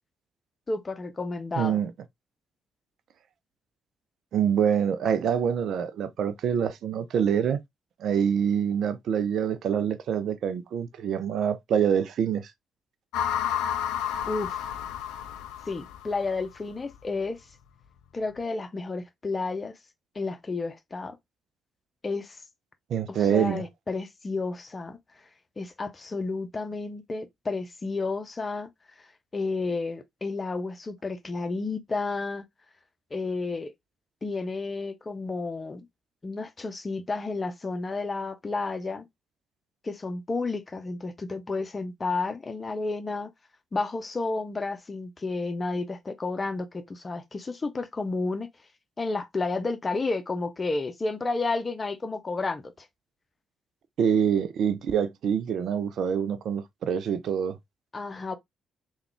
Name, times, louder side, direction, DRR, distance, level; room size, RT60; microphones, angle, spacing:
voice 1, 0.7-1.8 14.3-14.6 15.7-17.4 18.1-19.7 20.1-21.2 22.0-22.4 23.1-25.0 25.6-28.7 29.3-32.4 33.1-33.7 34.2-35.9 36.2-39.1 39.8-43.3 43.7-48.5 49.0-52.9 57.9-58.4, left 3 dB, 35° left, 0.7 m, -31 dB
voice 2, 1.6-1.9 4.3-7.6 8.0-12.5 22.9-23.6 54.0-57.6, right 8 dB, 60° right, 0.5 m, -25 dB
sound 1, 13.1-16.4, left 9 dB, 75° left, 0.4 m, -31 dB
3.5 x 2.3 x 3.3 m
hypercardioid pair, 45°, 0 cm